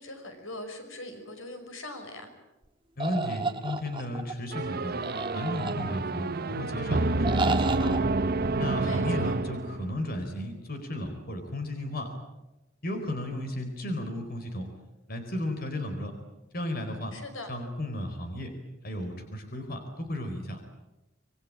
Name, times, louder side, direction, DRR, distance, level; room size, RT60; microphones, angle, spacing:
voice 1, 0.0-2.3 8.8-9.4 17.1-17.5, left 2 dB, 85° left, 6 dB, 5.6 m, -41 dB
voice 2, 3.0-4.9 5.3-8.0 8.6-12.1 12.8-14.7 15.1-16.1 16.5-17.1 17.5-18.5 18.8-20.6, left 1 dB, 50° left, 6 dB, 4.4 m, -34 dB
sound 1, 3.0-4.3 5.0-6.2 7.2-8.0, right 3 dB, 25° right, 1.5 m, -32 dB
sound 2, 4.5-10.1, right 2 dB, 50° right, 1.0 m, -28 dB
26.5 x 23.0 x 8.8 m, 1.0 s
head